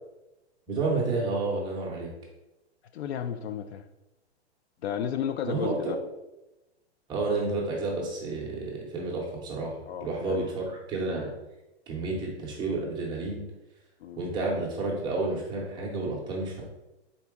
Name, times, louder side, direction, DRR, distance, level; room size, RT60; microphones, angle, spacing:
voice 1, 0.7-2.1 5.4-5.8 7.1-9.7 10.0-10.6 10.9-11.3 11.9-13.4 14.2-16.6, right 3 dB, 15° right, -3 dB, 0.6 m, -30 dB
voice 2, 2.9-3.8 4.8-6.0 9.9-10.5 14.0-14.3, left 8 dB, 70° left, 9 dB, 0.5 m, -33 dB
3.9 x 2.9 x 3.5 m, 0.99 s
hypercardioid pair, 150°, 33 cm